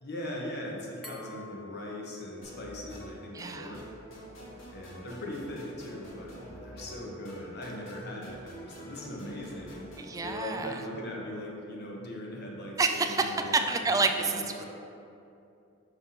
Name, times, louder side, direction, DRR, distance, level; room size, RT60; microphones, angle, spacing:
voice 1, 0.0-3.8 4.7-14.6, left 1 dB, 55° left, -2 dB, 1.0 m, -40 dB
Glass, 1.0-3.8, left 3 dB, ahead, 0.8 m, -50 dB
sound 1, 2.4-10.2, equal, 75° left, 1.3 m, -47 dB
voice 2, 3.3-3.8 10.0-10.8 12.8-14.6, right 3 dB, 15° right, 6 dB, 0.3 m, -29 dB
5.7 x 3.5 x 5.6 m, 2.6 s
head